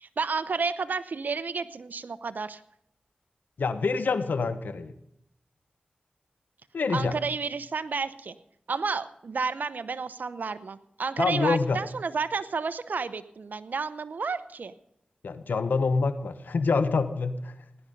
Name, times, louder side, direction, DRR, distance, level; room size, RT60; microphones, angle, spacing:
voice 1, 0.0-2.6 6.9-8.3 8.7-14.7, right 4 dB, 75° right, 13 dB, 0.8 m, -31 dB
voice 2, 3.6-4.9 6.7-7.2 11.2-11.8 15.2-17.5, left 4 dB, 85° left, 11 dB, 1.1 m, -26 dB
17.5 x 10.5 x 5.4 m, 0.77 s
cardioid pair, 40°, 3 cm